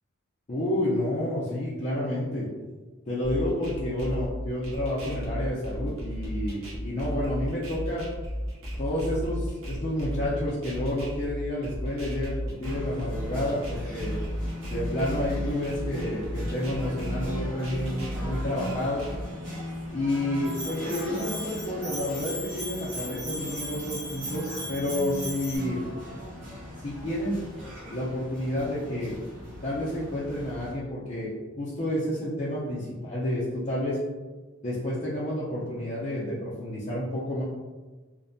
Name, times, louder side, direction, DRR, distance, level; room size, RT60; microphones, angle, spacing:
voice 1, 0.5-2.5 3.1-8.1 8.8-14.1 14.7-19.0 19.9-25.8 26.8-27.4 27.9-29.2 29.6-31.3 31.6-34.0 34.6-37.4, left 1 dB, 35° left, -10 dB, 0.4 m, -30 dB
sound 1, 3.2-19.2, equal, 85° right, 0.6 m, -34 dB
sound 2, 12.6-30.7, equal, 60° right, 1.2 m, -39 dB
Bell, 20.4-25.6, equal, 25° right, 1.0 m, -38 dB
2.5 x 2.1 x 2.5 m, 1.3 s
head